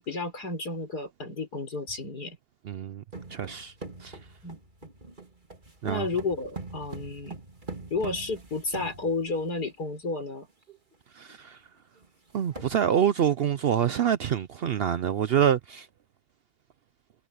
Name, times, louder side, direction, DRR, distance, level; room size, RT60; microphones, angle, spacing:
voice 1, 0.0-2.4 4.4-4.6 5.8-7.4 7.9-10.5, left 3 dB, 85° left, 5.8 m, -32 dB
voice 2, 2.7-3.0 3.3-3.7 4.0-4.2 5.8-6.1 11.2-11.6 12.3-15.9, right 9 dB, 70° right, 0.5 m, -26 dB
sound 1, 3.1-9.6 10.3-10.4 10.7-10.9 11.3-11.4 12.0-12.1 12.3-12.7, right 3 dB, 30° right, 3.1 m, -43 dB
omnidirectional pair, 1.6 m